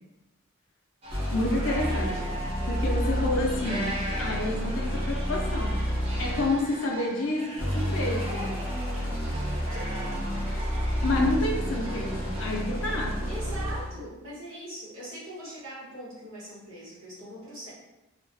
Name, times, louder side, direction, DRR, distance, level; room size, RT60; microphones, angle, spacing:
sound 1, 1.0-12.6, right 1 dB, 30° right, 0.4 m, -40 dB
sound 2, 1.1-6.7 7.6-14.0, equal, 10° right, 1.0 m, -30 dB
voice 1, 1.3-2.2 2.7-3.9 4.2-5.7 6.2-8.5 11.0-13.2, left 2 dB, 65° left, -1 dB, 0.5 m, -29 dB
voice 2, 13.3-17.7, right 1 dB, 75° right, -8 dB, 1.1 m, -41 dB
2.3 x 2.2 x 2.5 m, 0.98 s
head